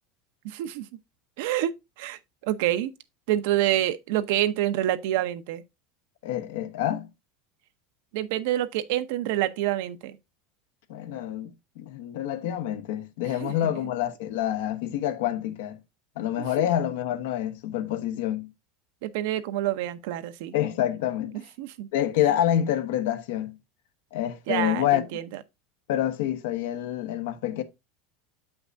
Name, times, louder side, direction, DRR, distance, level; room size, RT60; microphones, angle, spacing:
voice 1, 0.4-0.9 1.4-2.9 3.3-5.6 8.1-10.2 13.3-13.5 16.4-16.7 19.0-20.5 21.6-21.9 24.5-25.4, right 13 dB, 75° right, 0.7 m, -27 dB
voice 2, 6.2-7.1 10.9-15.8 16.2-18.5 20.5-21.4 21.9-23.6 24.1-25.1 25.9-27.6, left 11 dB, 80° left, 1.1 m, -27 dB
7.8 x 5.8 x 2.6 m
supercardioid pair, 110°, 0 cm